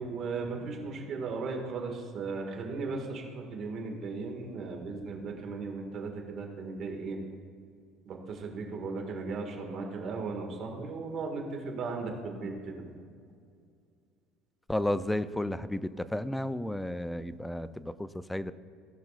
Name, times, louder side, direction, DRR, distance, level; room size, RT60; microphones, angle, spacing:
voice 1, 0.0-7.2 8.1-12.9, right 4 dB, 50° right, 1 dB, 1.8 m, -36 dB
voice 2, 14.7-18.5, left 1 dB, 5° left, 14 dB, 0.4 m, -32 dB
17.5 x 5.9 x 2.4 m, 2.3 s
cardioid pair, 115°, 0 cm